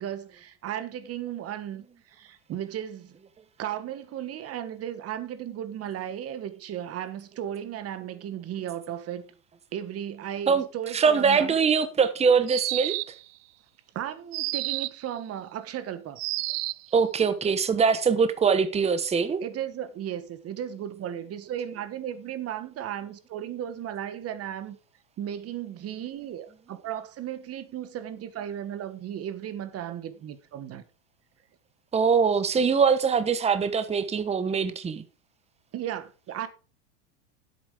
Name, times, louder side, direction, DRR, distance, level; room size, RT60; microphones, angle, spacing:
voice 1, 0.0-3.1 3.6-9.2 9.7-11.5 13.9-16.2 19.4-24.8 25.2-30.8 35.7-36.5, right 10 dB, 35° right, 1.5 m, -35 dB
voice 2, 10.9-12.9 16.9-19.4 31.9-35.0, right 6 dB, 15° right, 1.0 m, -23 dB
sound 1, 12.5-13.3 14.3-15.1 16.2-16.9, right 23 dB, 60° right, 0.5 m, -30 dB
10.0 x 8.3 x 4.9 m
supercardioid pair, 125°, 43 cm